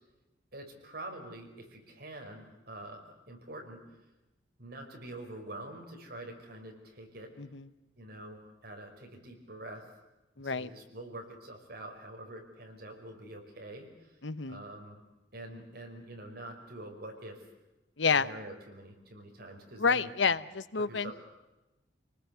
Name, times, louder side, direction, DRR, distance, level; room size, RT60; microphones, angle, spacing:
voice 1, 0.5-3.8 4.6-7.3 8.0-9.8 10.4-14.1 14.5-15.0 15.3-17.4 18.1-20.1 20.7-21.1, right 1 dB, 55° right, 2 dB, 5.6 m, -46 dB
voice 2, 7.4-7.7 10.4-10.7 14.2-14.6 18.0-18.3 19.8-21.1, left 5 dB, 80° left, 14 dB, 1.0 m, -29 dB
27.5 x 19.5 x 8.2 m, 0.99 s
head